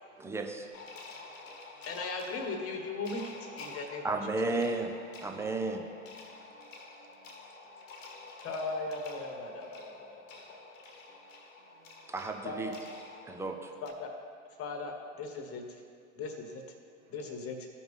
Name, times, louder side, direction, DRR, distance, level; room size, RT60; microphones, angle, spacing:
voice 1, 0.2-0.7 4.0-4.9 5.2-5.8 12.1-12.7 13.3-13.7, right 3 dB, 5° right, 0.6 m, -33 dB
sound 1, 0.7-13.9, left 3 dB, 65° left, 1.3 m, -49 dB
voice 2, 0.9-1.6 3.7-3.8 6.5-7.3 7.8-8.3, right 10 dB, 75° right, 0.6 m, -62 dB
voice 3, 1.8-4.1 8.4-10.7 12.4-12.7 13.8-14.1 14.6-15.8 16.2-16.6 17.1-17.7, left 3 dB, 35° left, 1.4 m, -38 dB
15.0 x 5.3 x 3.2 m
hypercardioid pair, 90°, 41 cm